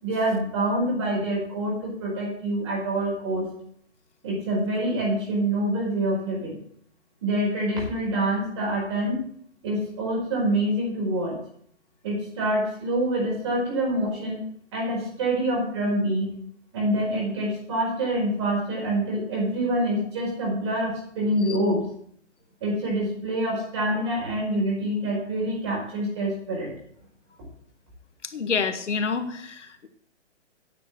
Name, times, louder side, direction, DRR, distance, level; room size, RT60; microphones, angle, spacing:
voice 1, 0.0-3.5 4.2-6.6 7.2-9.2 9.6-11.3 12.0-14.4 14.7-16.3 16.7-21.8 22.6-26.7, right 1 dB, 25° right, -3 dB, 5.0 m, -26 dB
voice 2, 28.3-29.9, left 5 dB, 85° left, 7 dB, 1.9 m, -28 dB
9.9 x 7.0 x 7.6 m, 0.64 s
hypercardioid pair, 180°, 35 cm